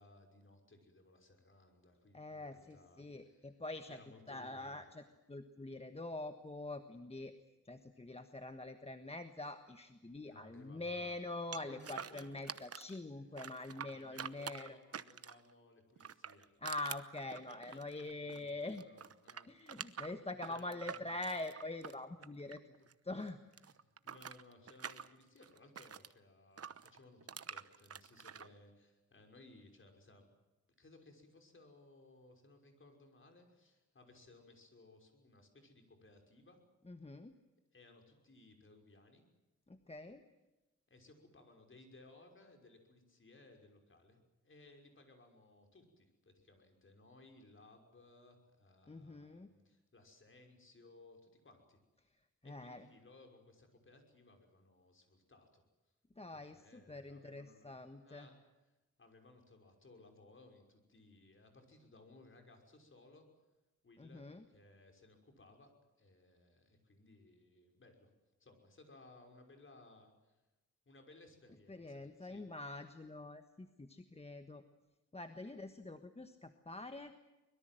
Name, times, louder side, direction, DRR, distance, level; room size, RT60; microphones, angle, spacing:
voice 1, 0.0-3.5 3.9-4.9 10.3-11.2 11.7-12.5 13.8-16.5 17.5-20.1 20.5-21.2 22.7-22.9 23.6-30.3 30.8-36.6 37.7-39.2 40.9-44.2 44.4-51.8 52.4-55.6 56.3-57.7 58.0-58.3 59.0-63.3 63.8-65.7 66.0-68.1 68.4-70.4 70.9-72.5, left 2 dB, 40° left, 4 dB, 5.9 m, -61 dB
voice 2, 2.1-4.0 4.3-7.3 7.6-14.8 16.6-18.8 19.5-22.6 23.0-23.4 36.9-37.3 39.7-40.2 48.9-49.5 52.4-52.9 56.2-58.3 64.0-64.4 71.7-74.6 75.1-77.1, left 2 dB, 20° left, 8 dB, 1.4 m, -45 dB
sound 1, 11.5-13.0 13.4-15.5 16.0-18.5 18.7-22.9 23.2-26.1 26.6-28.5, right 7 dB, 50° right, 1.0 m, -47 dB
24.0 x 22.5 x 7.7 m, 1.0 s
wide cardioid pair, 100°, 31 cm